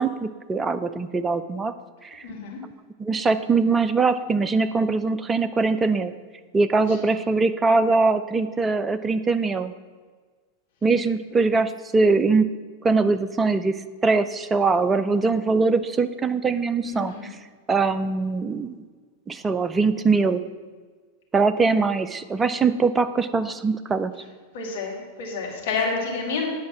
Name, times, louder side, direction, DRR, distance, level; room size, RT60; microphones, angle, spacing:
voice 1, 0.0-1.7 2.0-2.2 3.0-6.1 6.5-9.7 10.8-12.5 12.8-13.8 14.0-17.1 17.7-18.8 19.3-20.4 21.3-24.1, right 4 dB, 15° right, 11 dB, 0.4 m, -22 dB
voice 2, 2.2-2.6 6.9-7.0 16.8-17.3 24.5-26.5, left 4 dB, 55° left, -1 dB, 2.0 m, -29 dB
9.4 x 5.1 x 5.9 m, 1.5 s
figure-of-eight pair, 90°, 0 cm